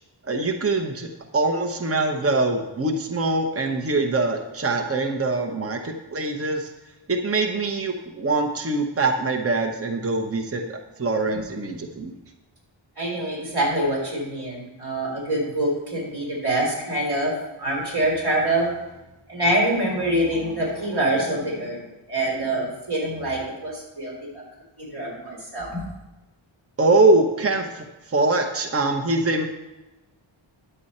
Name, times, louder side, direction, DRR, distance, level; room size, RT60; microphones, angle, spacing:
voice 1, 0.3-1.1 1.3-6.7 7.1-12.1 26.8-29.5, right 2 dB, 30° right, 3 dB, 0.9 m, -23 dB
voice 2, 13.0-17.3 17.6-18.7 19.3-21.8 22.1-24.4 24.8-25.9, right 1 dB, 50° right, -2 dB, 3.6 m, -25 dB
10.0 x 7.8 x 4.2 m, 1.0 s
wide cardioid pair, 90°, 49 cm